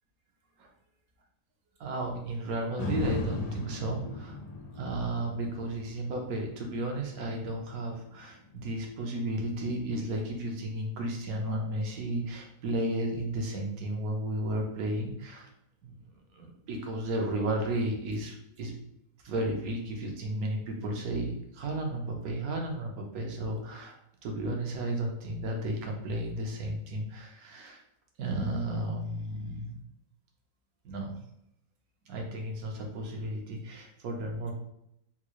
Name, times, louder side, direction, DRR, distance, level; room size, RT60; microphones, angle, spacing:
voice 1, 1.8-4.4 4.8-15.5 15.8-16.0 16.3-18.8 19.2-24.0 24.2-27.8 28.2-29.8 30.8-31.2 32.0-34.5, right 1 dB, 70° right, 1 dB, 1.1 m, -33 dB
sound 1, 2.8-10.9 11.4-11.5, left 2 dB, 85° left, 1.2 m, -39 dB
3.6 x 2.4 x 3.0 m, 0.78 s
omnidirectional pair, 1.7 m